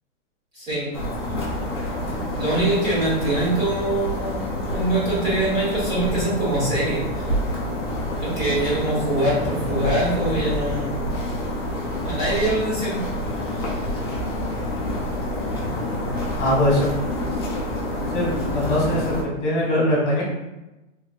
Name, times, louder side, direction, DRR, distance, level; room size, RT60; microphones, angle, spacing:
voice 1, 0.5-0.9 2.1-7.3 8.2-11.3 12.0-13.0 13.5-13.7, right 2 dB, 15° right, -10 dB, 0.9 m, -24 dB
sound 1, 0.9-19.2, left 1 dB, 20° left, 0.4 m, -27 dB
voice 2, 16.4-16.9 18.1-19.1 19.4-20.2, left 1 dB, 40° left, -4 dB, 1.4 m, -21 dB
3.1 x 3.1 x 2.3 m, 1.0 s
hypercardioid pair, 170°, 38 cm